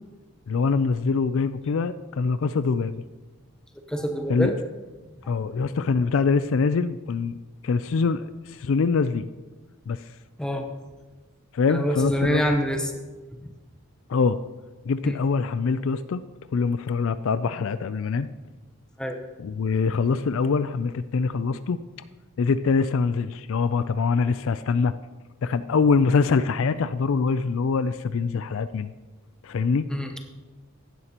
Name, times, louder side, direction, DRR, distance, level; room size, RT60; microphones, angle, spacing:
voice 1, 0.5-3.0 4.3-4.5 5.3-7.4 7.6-9.3 9.9-10.0 11.5-12.5 14.1-14.4 14.8-16.2 16.5-18.3 19.4-21.8 22.4-24.9 25.4-28.9 29.4-29.9, left 5 dB, 65° left, 13 dB, 0.4 m, -24 dB
voice 2, 3.9-4.6 10.4-10.7 11.7-12.9 15.0-15.2 19.0-19.2 29.9-30.2, equal, 5° left, 3 dB, 0.9 m, -26 dB
15.5 x 11.0 x 2.9 m, 1.2 s
head